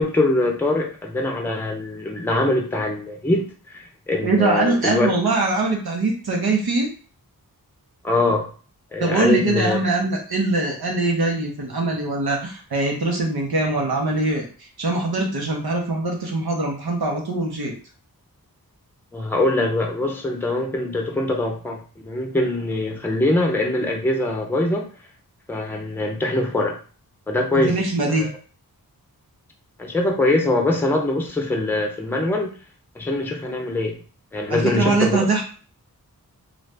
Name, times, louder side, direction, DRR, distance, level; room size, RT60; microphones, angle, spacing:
voice 1, 0.0-5.1 8.0-8.5 8.9-9.8 19.1-24.9 25.5-26.8 27.3-27.8 28.1-28.3 29.8-32.5 32.9-34.0 34.3-35.3, left 2 dB, 5° left, 1 dB, 0.6 m, -23 dB
voice 2, 4.2-6.9 9.0-14.5 14.8-17.7 27.5-28.3 34.5-35.4, right 2 dB, 90° right, 0 dB, 1.0 m, -22 dB
2.6 x 2.5 x 3.3 m, 0.39 s
wide cardioid pair, 80°, 36 cm